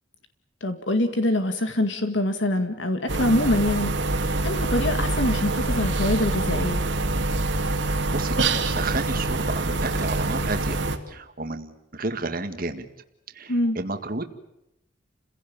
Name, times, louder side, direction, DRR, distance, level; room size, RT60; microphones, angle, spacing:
voice 1, 0.6-6.8 13.5-13.8, left 1 dB, 70° left, 8 dB, 2.1 m, -25 dB
sound 1, 3.1-11.0, right 2 dB, 70° right, 2.6 m, -25 dB
voice 2, 7.7-10.8 11.1-12.9 13.3-14.2, right 2 dB, 50° right, 7 dB, 1.9 m, -32 dB
29.5 x 16.5 x 8.8 m, 0.87 s
head